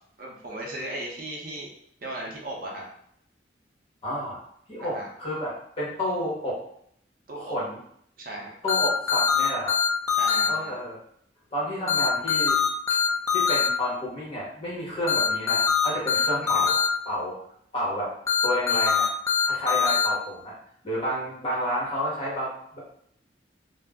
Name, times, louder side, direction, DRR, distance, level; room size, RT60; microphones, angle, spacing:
voice 1, 0.2-1.7 2.0-2.9 4.8-5.1 7.3-7.5 8.2-8.5 10.2-10.7 16.4-16.7, right 1 dB, 50° right, -2 dB, 0.6 m, -36 dB
voice 2, 4.0-4.4 4.7-6.6 7.3-7.8 8.6-9.8 10.5-11.0 11.5-12.6 13.3-17.4 17.7-18.1 18.4-19.1 19.4-20.5 20.8-22.8, equal, 30° left, -6 dB, 1.0 m, -30 dB
sound 1, 8.7-10.5 11.9-13.7 15.1-16.9 18.3-20.1, left 6 dB, 15° left, 0.4 m, -22 dB
2.4 x 2.0 x 3.4 m, 0.69 s
head